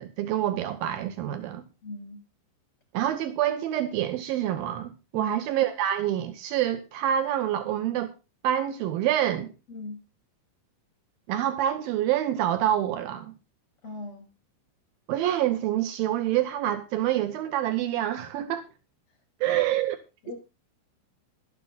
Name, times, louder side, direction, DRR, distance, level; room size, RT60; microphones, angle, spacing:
voice 1, 0.0-1.7 2.9-8.1 8.4-9.5 11.3-13.3 15.1-18.7 19.4-20.0, right 11 dB, 80° right, 2.1 m, -27 dB
voice 2, 1.8-2.2 5.1-5.3 9.7-10.0 13.8-14.3 19.5-19.6 20.2-20.4, left 3 dB, 30° left, 7.8 m, -39 dB
13.0 x 12.5 x 4.0 m
omnidirectional pair, 5.6 m